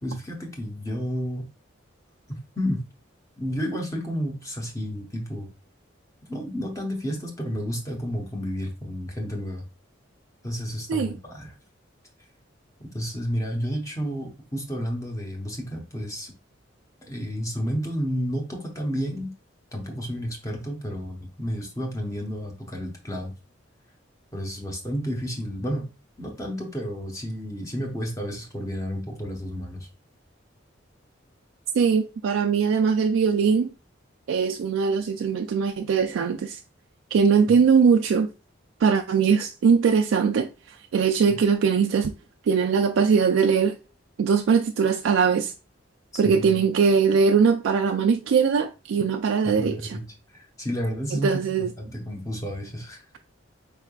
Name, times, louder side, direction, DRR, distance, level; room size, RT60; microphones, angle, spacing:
voice 1, 0.0-1.4 2.3-2.8 3.4-5.5 6.3-9.7 10.4-11.5 12.9-16.3 17.0-19.3 19.7-23.3 24.3-25.9 26.2-29.9 41.3-41.4 46.1-46.6 49.4-50.0 50.3-53.1, equal, 15° left, 0.9 m, -31 dB
voice 2, 31.7-33.7 34.3-36.6 37.1-38.3 38.8-42.1 42.4-43.8 44.2-45.5 46.2-50.0 51.1-51.7, right 6 dB, 85° right, 0.3 m, -21 dB
4.6 x 3.4 x 2.3 m
head